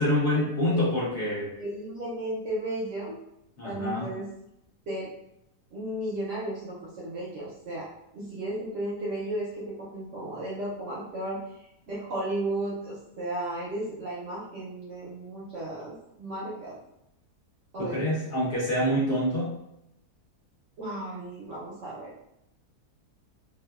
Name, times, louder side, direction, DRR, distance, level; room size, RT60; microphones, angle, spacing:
voice 1, 0.0-1.5 3.6-4.1 17.8-19.6, left 1 dB, 55° left, -7 dB, 0.8 m, -26 dB
voice 2, 1.6-3.2 3.6-4.3 4.9-5.1 5.7-7.9 8.1-16.8 17.7-18.0 20.8-22.1, right 1 dB, 65° right, -6 dB, 0.7 m, -34 dB
2.8 x 2.3 x 2.3 m, 0.82 s
omnidirectional pair, 1.8 m